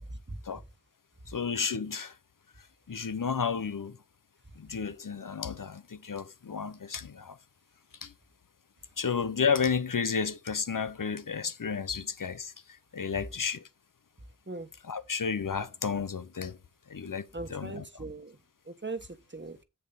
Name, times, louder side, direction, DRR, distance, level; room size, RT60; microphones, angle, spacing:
voice 1, 1.3-2.1 2.9-4.0 4.6-7.4 8.0-8.1 9.0-12.5 12.9-13.6 14.9-16.6 16.9-17.8, left 6 dB, 80° left, 0.8 m, -32 dB
voice 2, 17.3-18.4 18.7-19.6, right 3 dB, 35° right, 1.3 m, -39 dB
7.6 x 6.9 x 3.9 m
wide cardioid pair, 45°, 32 cm